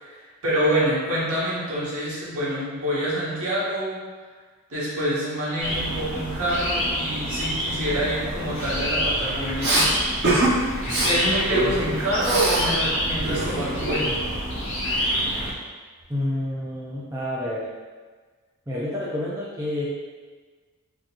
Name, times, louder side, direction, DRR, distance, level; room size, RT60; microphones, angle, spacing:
voice 1, 0.0-4.0 4.7-9.8 11.0-14.2, right 1 dB, 70° right, -8 dB, 1.2 m, -26 dB
sound 1, 5.6-15.5, equal, 60° left, 1.2 m, -28 dB
Respiratory sounds, 9.6-9.9 10.2-10.5 10.8-11.1 11.5-12.7 12.9-14.4, right 1 dB, 50° right, 0.8 m, -24 dB
voice 2, 16.1-17.7 18.7-19.9, left 1 dB, 15° right, -7 dB, 0.4 m, -29 dB
3.6 x 2.8 x 2.4 m, 1.4 s
head